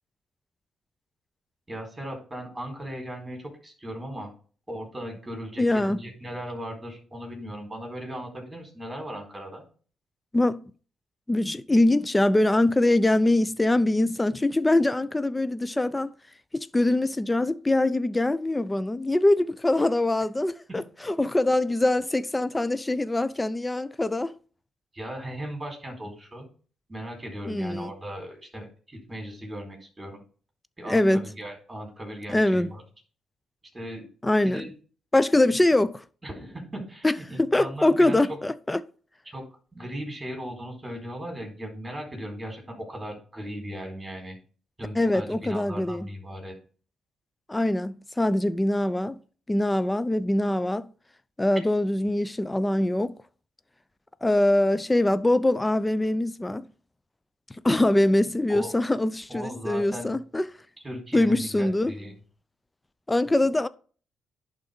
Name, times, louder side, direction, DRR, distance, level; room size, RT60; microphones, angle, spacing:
voice 1, 1.7-4.3 4.7-9.6 24.9-26.5 26.9-30.2 30.8-32.8 33.7-34.1 34.4-34.7 36.2-38.2 39.3-39.4 39.7-44.4 44.8-46.5 58.5-58.7 59.3-60.1 60.8-62.1, equal, 15° right, 4.4 m, -37 dB
voice 2, 5.6-6.0 10.3-10.6 11.3-16.1 16.5-24.3 27.5-27.9 30.9-31.2 32.3-32.7 34.2-34.7 35.1-36.0 37.0-37.1 37.4-38.8 45.0-46.1 47.5-49.2 49.5-50.9 51.4-53.1 54.2-56.7 57.6-60.5 61.1-61.9 63.1-63.7, left 1 dB, 15° left, 0.5 m, -23 dB
11.0 x 3.9 x 5.3 m
cardioid pair, 90°, 0 cm